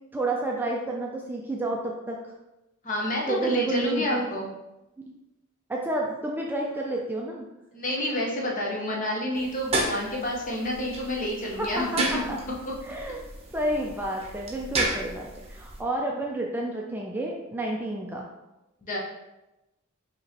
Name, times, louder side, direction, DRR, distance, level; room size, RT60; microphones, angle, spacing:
voice 1, 0.1-2.2 3.3-4.3 5.7-7.5 11.6-12.4 12.8-13.2 13.5-18.3, right 2 dB, 10° right, -1 dB, 0.3 m, -30 dB
voice 2, 2.8-4.5 7.7-11.9 18.8-19.0, left 1 dB, 40° left, -2 dB, 0.9 m, -29 dB
sound 1, 9.4-15.8, right 2 dB, 30° right, 0.8 m, -33 dB
5.3 x 2.9 x 2.9 m, 0.98 s
head